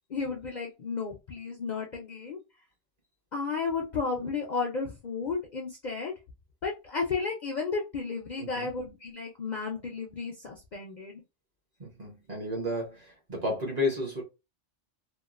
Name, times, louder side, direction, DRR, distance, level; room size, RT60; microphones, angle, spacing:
voice 1, 0.1-2.4 3.3-6.1 6.6-11.2, left 4 dB, 50° left, 0.6 m, -33 dB
voice 2, 11.8-14.2, left 1 dB, 35° right, 1.0 m, -32 dB
3.0 x 2.3 x 2.4 m
omnidirectional pair, 1.2 m